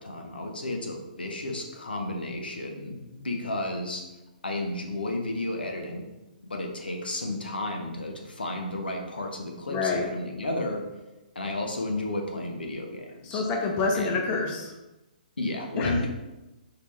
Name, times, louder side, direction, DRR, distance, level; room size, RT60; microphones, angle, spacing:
voice 1, 0.0-4.0 4.4-6.1 6.4-10.8 11.3-13.4 13.9-14.2 15.4-16.1, left 2 dB, 90° left, 2 dB, 0.9 m, -32 dB
voice 2, 9.7-10.1 13.2-14.7 15.8-16.1, left 4 dB, 25° left, 1 dB, 0.8 m, -27 dB
4.8 x 3.4 x 3.2 m, 1.0 s
hypercardioid pair, 135°, 5 cm